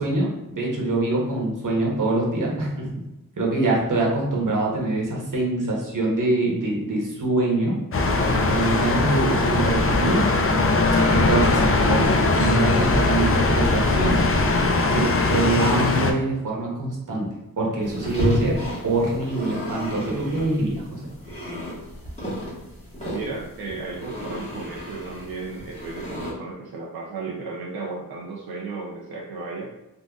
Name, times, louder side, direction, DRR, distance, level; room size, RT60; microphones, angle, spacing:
voice 1, 0.0-3.0 3.4-7.7 8.3-10.2 11.1-14.2 14.9-17.3 17.6-18.5 18.8-21.1, right 2 dB, 60° right, -3 dB, 1.0 m, -24 dB
sound 1, 7.9-16.1, left 3 dB, 40° left, 0.4 m, -20 dB
sound 2, 17.8-26.3, left 1 dB, 20° left, 1.4 m, -32 dB
voice 2, 23.1-29.7, right 3 dB, 85° right, -3 dB, 0.5 m, -34 dB
3.7 x 2.5 x 2.3 m, 0.97 s
wide cardioid pair, 80°, 36 cm